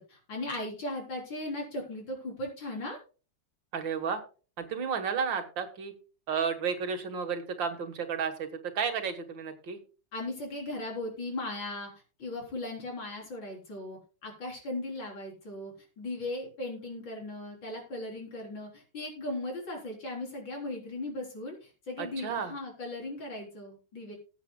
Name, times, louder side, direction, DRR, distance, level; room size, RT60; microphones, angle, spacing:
voice 1, 0.0-3.0 10.1-11.9 12.2-24.2, left 2 dB, 80° left, -1 dB, 4.6 m, -38 dB
voice 2, 3.7-4.2 4.6-5.9 6.3-8.5 8.7-9.8 22.0-22.5, right 6 dB, 75° right, 7 dB, 2.2 m, -32 dB
20.5 x 8.2 x 2.3 m, 0.35 s
omnidirectional pair, 2.1 m